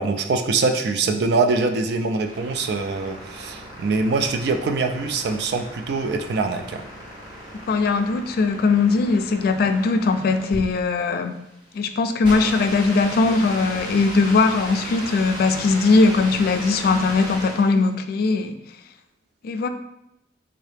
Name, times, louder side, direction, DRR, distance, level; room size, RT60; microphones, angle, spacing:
voice 1, 0.0-6.9, right 3 dB, 65° right, 6 dB, 0.4 m, -23 dB
sound 1, 1.9-17.8, equal, 25° right, 1.3 m, -36 dB
voice 2, 7.7-11.3 11.7-18.6 19.4-19.7, left 3 dB, 55° left, 8 dB, 0.3 m, -20 dB
3.8 x 2.7 x 3.3 m, 0.85 s
head